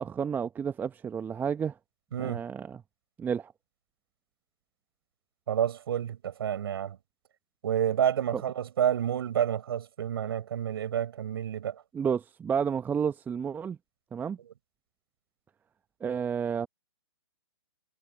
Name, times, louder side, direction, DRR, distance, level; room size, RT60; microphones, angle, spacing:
voice 1, 0.0-1.8 2.2-2.8 3.2-3.5 11.9-13.8 14.1-14.4 16.0-16.7, right 7 dB, 10° right, 1.0 m, -31 dB
voice 2, 2.1-2.4 5.5-7.0 7.6-11.8 14.4-14.5, right 9 dB, 60° right, 6.2 m, -29 dB
figure-of-eight pair, 120°, 15 cm